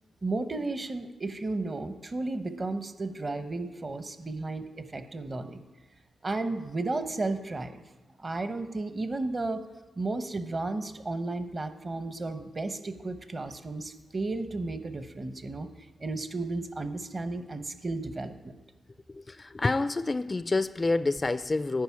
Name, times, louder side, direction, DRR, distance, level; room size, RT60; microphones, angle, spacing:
voice 1, 0.2-5.6 6.2-7.8 8.2-9.6 10.0-15.7 16.0-18.6, right 2 dB, 35° right, 10 dB, 0.9 m, -33 dB
voice 2, 19.1-21.8, left 3 dB, 30° left, 14 dB, 0.3 m, -28 dB
10.5 x 5.4 x 8.4 m, 1.1 s
cardioid pair, 75°, 0 cm